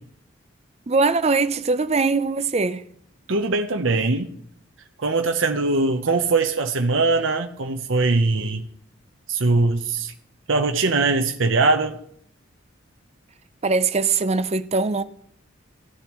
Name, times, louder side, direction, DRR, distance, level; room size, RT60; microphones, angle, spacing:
voice 1, 0.9-2.8 13.6-15.0, right 4 dB, 30° right, 0.6 m, -21 dB
voice 2, 3.3-4.3 5.0-8.6 9.3-10.1 10.5-12.0, right 3 dB, 70° right, 0.9 m, -21 dB
15.5 x 12.0 x 3.1 m
head